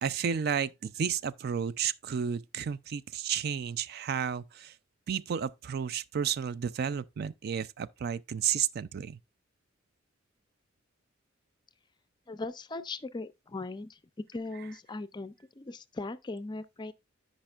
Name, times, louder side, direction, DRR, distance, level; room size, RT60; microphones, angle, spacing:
voice 1, 0.0-4.7 5.1-9.2, right 7 dB, 50° right, 0.4 m, -32 dB
voice 2, 12.3-14.0 14.3-16.9, left 3 dB, 20° left, 0.4 m, -39 dB
13.0 x 5.1 x 2.4 m
head